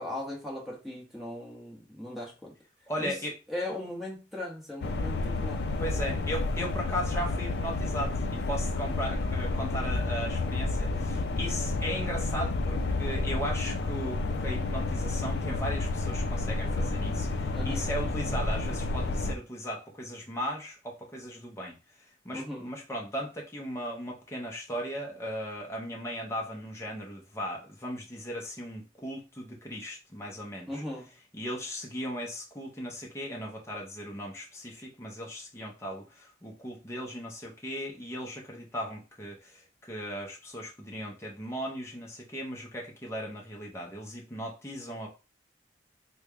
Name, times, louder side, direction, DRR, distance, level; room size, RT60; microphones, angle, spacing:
voice 1, 0.0-2.5 3.0-3.1 3.5-5.7 17.5-17.9 22.3-22.7 30.7-31.1, left 1 dB, ahead, 1.1 m, -38 dB
voice 2, 2.9-3.4 5.8-21.8 22.2-30.8 31.3-45.1, equal, 15° left, 0.6 m, -37 dB
sound 1, 4.8-19.4, left 2 dB, 65° left, 0.4 m, -30 dB
3.3 x 2.2 x 3.4 m
head